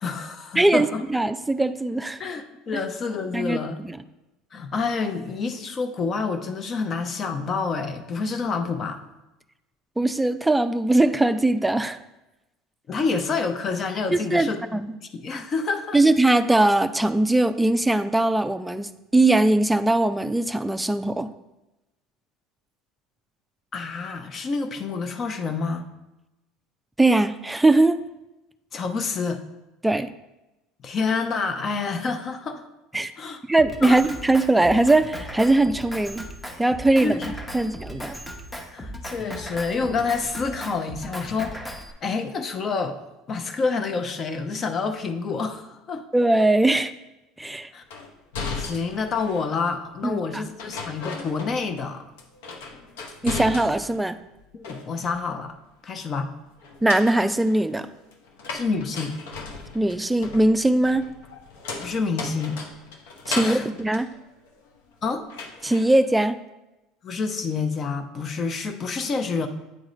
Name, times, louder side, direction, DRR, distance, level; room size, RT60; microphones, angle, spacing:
voice 1, 0.0-1.0 2.2-3.8 4.5-9.0 12.9-14.8 15.1-16.0 23.7-25.9 28.7-29.4 30.8-32.6 33.2-33.4 33.8-34.0 37.0-37.7 38.7-41.6 42.0-43.0 43.3-46.0 47.7-47.8 48.6-52.0 54.5-55.5 55.8-56.3 58.5-59.2 61.8-62.6 63.4-63.8 65.0-65.2 67.0-69.5, left 4 dB, 40° left, 7 dB, 0.7 m, -28 dB
voice 2, 0.6-2.2 3.3-4.0 10.0-12.0 14.1-15.0 15.9-21.3 27.0-28.0 29.8-30.1 32.9-33.1 33.5-36.3 36.6-37.1 37.5-38.1 46.1-46.9 47.4-47.7 50.0-50.4 53.2-54.2 56.8-57.9 59.7-61.0 63.3-64.1 65.6-66.4, right 2 dB, 10° right, 10 dB, 0.4 m, -20 dB
Drum kit, 33.6-41.9, equal, 10° left, 0.9 m, -37 dB
sound 1, 47.9-49.5 50.6-51.9 52.2-54.0 54.4-55.2 56.6-64.9 65.3-65.9, left 4 dB, 80° left, 0.8 m, -36 dB
9.1 x 3.7 x 3.1 m, 0.98 s
hypercardioid pair, 80°, 0 cm